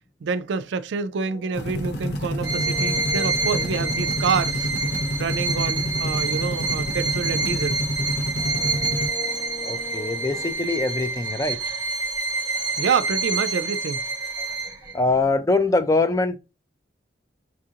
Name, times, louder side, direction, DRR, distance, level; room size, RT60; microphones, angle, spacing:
voice 1, 0.2-4.7 5.2-7.8 12.8-14.0, right 5 dB, 85° right, 0.4 m, -27 dB
sound 1, 1.2-7.9 8.3-10.5, left 4 dB, 40° left, 1.0 m, -42 dB
sound 2, 1.5-9.1, equal, 65° left, 0.7 m, -28 dB
Bowed string instrument, 2.4-14.9, right 3 dB, 20° right, 1.0 m, -27 dB
voice 2, 9.6-11.6 14.9-16.4, left 3 dB, 20° left, 0.4 m, -23 dB
6.1 x 2.5 x 2.8 m
head